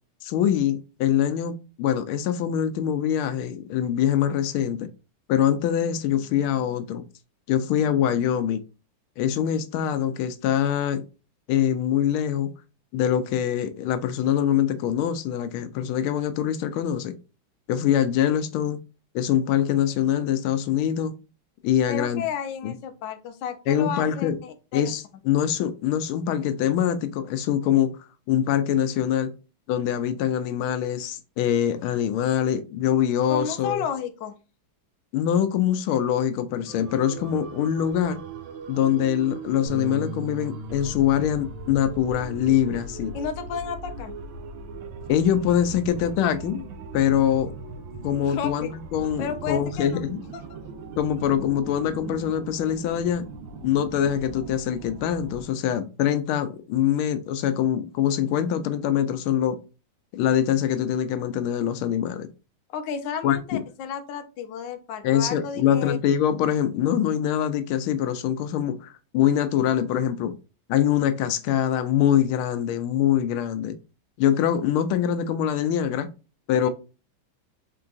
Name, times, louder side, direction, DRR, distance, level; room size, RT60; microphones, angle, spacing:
voice 1, 0.2-4.9 5.3-7.0 7.5-8.6 9.2-11.0 11.5-12.5 12.9-17.1 17.7-18.8 19.1-21.2 21.6-22.2 22.6-22.7 23.7-24.4 24.7-28.0 28.3-29.3 29.7-33.8 35.1-38.2 38.7-43.1 45.1-46.7 46.9-47.5 48.0-50.2 51.0-53.2 53.6-59.6 60.1-62.3 63.2-63.6 65.0-70.3 70.7-73.8 74.2-76.1 76.5-76.7, left 10 dB, 90° left, 1.5 m, -24 dB
voice 2, 21.9-24.9 33.3-34.3 43.1-44.2 48.2-48.7 49.2-50.0 62.7-66.0 76.6-76.7, left 7 dB, 70° left, 1.3 m, -32 dB
sound 1, 36.7-55.5, right 4 dB, 75° right, 1.5 m, -39 dB
Bass guitar, 39.7-45.9, right 1 dB, 35° right, 1.2 m, -41 dB
4.6 x 3.8 x 2.5 m
omnidirectional pair, 2.2 m